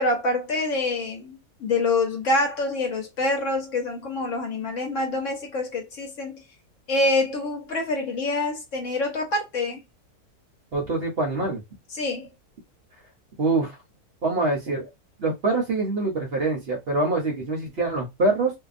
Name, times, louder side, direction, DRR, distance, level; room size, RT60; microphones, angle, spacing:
voice 1, 0.0-6.4 6.9-9.8 11.9-12.3, left 2 dB, 60° left, 1.0 m, -26 dB
voice 2, 10.7-11.6 13.4-13.7 14.2-14.9 15.2-18.5, right 2 dB, 50° right, 0.9 m, -24 dB
2.7 x 2.2 x 2.4 m
omnidirectional pair, 1.6 m